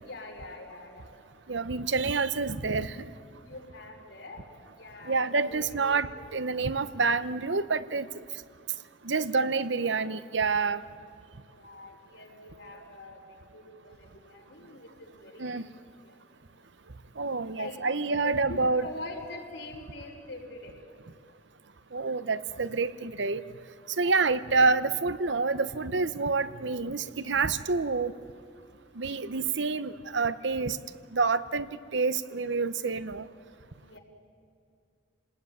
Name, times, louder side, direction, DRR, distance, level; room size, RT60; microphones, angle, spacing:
voice 1, 0.0-1.1 3.4-6.0 9.1-9.5 11.5-15.7 16.0-16.2 17.5-20.8 23.8-24.2 33.8-34.0, left 2 dB, 75° left, 0 dB, 5.5 m, -44 dB
voice 2, 1.5-3.1 5.1-8.1 9.0-10.8 15.4-15.7 17.2-18.8 21.9-23.4 24.0-28.1 28.9-30.8 31.1-33.3, right 4 dB, 75° right, 14 dB, 0.9 m, -28 dB
29.5 x 20.0 x 9.6 m, 2.5 s
head